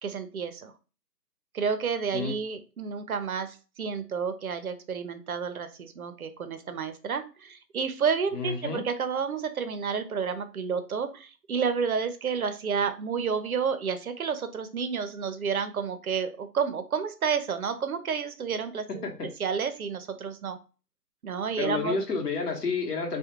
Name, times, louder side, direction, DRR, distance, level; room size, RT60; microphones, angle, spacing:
voice 1, 0.0-0.7 1.5-19.1 19.4-20.6 21.2-22.0, right 6 dB, 60° right, 9 dB, 0.5 m, -30 dB
voice 2, 8.3-8.8 19.0-19.3 21.6-23.2, left 4 dB, 70° left, 2 dB, 1.0 m, -30 dB
2.4 x 2.1 x 2.9 m, 0.33 s
hypercardioid pair, 170°, 49 cm